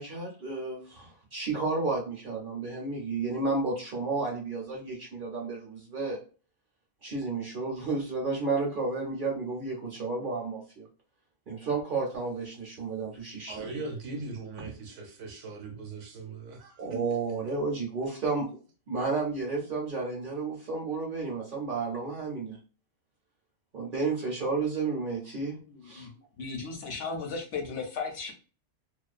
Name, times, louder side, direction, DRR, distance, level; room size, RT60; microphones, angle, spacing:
voice 1, 0.0-6.2 7.0-10.9 11.5-13.7 16.8-18.5 18.9-22.6 23.7-25.5 25.8-26.1, right 3 dB, 55° right, 0.6 m, -32 dB
voice 2, 13.5-16.8, right 3 dB, 75° right, 0.9 m, -39 dB
voice 3, 25.6-26.1 26.4-28.3, left 4 dB, 65° left, 0.8 m, -36 dB
2.3 x 2.2 x 2.4 m
omnidirectional pair, 1.3 m